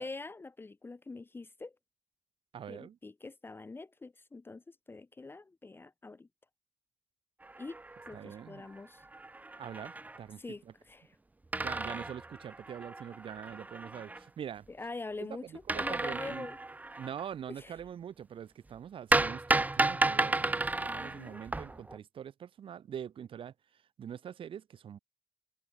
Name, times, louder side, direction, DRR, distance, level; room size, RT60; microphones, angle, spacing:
voice 1, 0.0-1.7 2.7-6.3 7.6-7.8 8.1-9.0 10.4-11.2 14.7-16.6 17.5-17.8 20.9-21.4, left 3 dB, 25° left, 0.5 m, -44 dB
voice 2, 2.5-3.0 8.1-8.7 9.6-10.4 11.6-14.7 15.2-16.5 17.0-23.5 24.0-25.0, right 9 dB, 85° right, 0.4 m, -44 dB
sound 1, 7.4-8.4 8.8-8.9 9.0-10.2 11.5-14.2 15.7-17.2 19.1-22.0, right 2 dB, 20° right, 0.6 m, -33 dB
wide cardioid pair, 150°, 9 cm